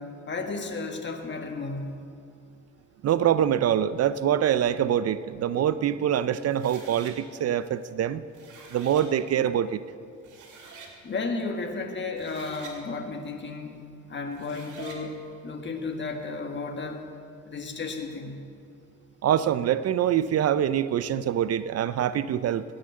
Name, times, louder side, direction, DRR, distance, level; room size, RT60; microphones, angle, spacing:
voice 1, 0.0-2.0 11.0-13.8 14.1-17.0 17.4-18.4, left 3 dB, 40° left, 4 dB, 1.6 m, -33 dB
voice 2, 3.0-8.2 8.7-9.8 19.2-22.6, right 10 dB, 55° right, 15 dB, 0.5 m, -24 dB
sound 1, 6.5-7.1 8.2-9.1 9.9-10.0 10.2-10.9 12.0-12.8 14.3-15.0, right 4 dB, 80° right, 2.5 m, -46 dB
16.5 x 6.5 x 7.6 m, 2.4 s
cardioid pair, 90°, 30 cm